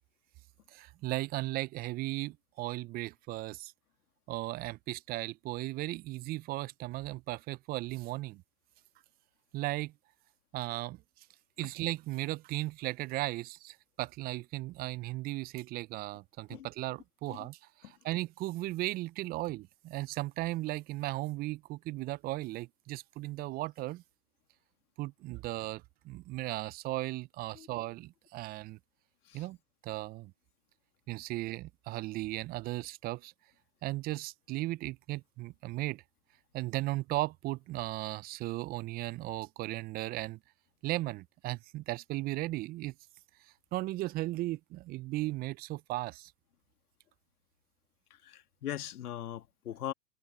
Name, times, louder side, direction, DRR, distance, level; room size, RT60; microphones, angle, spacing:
voice 1, 0.7-3.7 4.3-8.4 9.5-9.9 10.5-11.0 11.6-24.0 25.0-28.8 29.3-29.6 29.8-30.3 31.1-33.3 33.8-36.0 36.5-40.4 40.8-42.9 43.7-46.3, right 18 dB, 20° right, 0.5 m, -36 dB
voice 2, 48.2-49.9, left 11 dB, 65° left, 2.5 m, -40 dB
hypercardioid pair, 110°, 48 cm